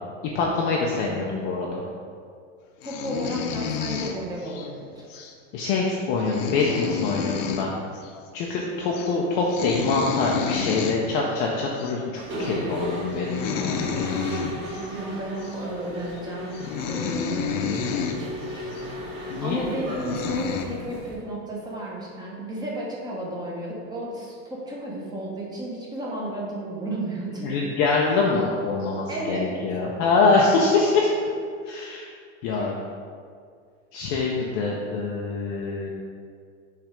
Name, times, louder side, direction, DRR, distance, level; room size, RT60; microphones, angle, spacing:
voice 1, 0.3-1.8 5.5-7.7 8.3-14.1 19.3-19.7 27.4-31.1 31.7-32.1 32.4-32.7 33.9-35.9, left 3 dB, 30° left, -2 dB, 0.4 m, -24 dB
sound 1, 2.8-4.7 5.1-5.3 5.8-5.9 6.1-7.7 7.9-8.1 8.4-8.7 8.9-9.1 9.5-11.0 11.8-11.9 12.4-12.6 13.1-14.9 15.4-15.6 16.2-16.3 16.5-18.2 18.7-18.8 19.5-19.6 20.0-20.6, left 7 dB, 70° left, 0.7 m, -30 dB
voice 2, 2.8-5.2 14.7-16.5 16.9-27.6 29.1-29.6 32.5-32.7 34.4-34.5, right 1 dB, 10° right, -3 dB, 0.7 m, -33 dB
Mechanisms, 12.2-21.1, equal, 30° right, 1.4 m, -35 dB
5.9 x 3.3 x 5.0 m, 2.1 s
supercardioid pair, 160°, 38 cm